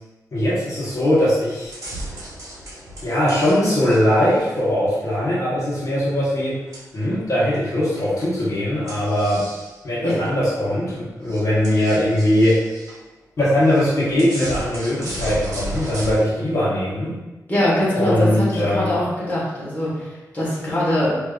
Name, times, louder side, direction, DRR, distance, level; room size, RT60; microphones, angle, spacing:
voice 1, 0.3-1.7 3.0-6.5 6.9-9.4 9.8-12.7 13.4-17.1 17.9-18.9, left 1 dB, 50° left, -8 dB, 1.1 m, -20 dB
sound 1, 0.8-1.1 1.4-3.6 3.9-5.2 6.7-7.2 8.0-8.3 8.9-9.8 10.2-10.3 10.9-11.0 11.2-13.0 13.7-16.1, right 1 dB, 55° right, 1.3 m, -35 dB
voice 2, 17.5-21.1, left 1 dB, 25° left, -8 dB, 1.2 m, -22 dB
5.0 x 2.7 x 2.4 m, 1.1 s
wide cardioid pair, 140°, 7 cm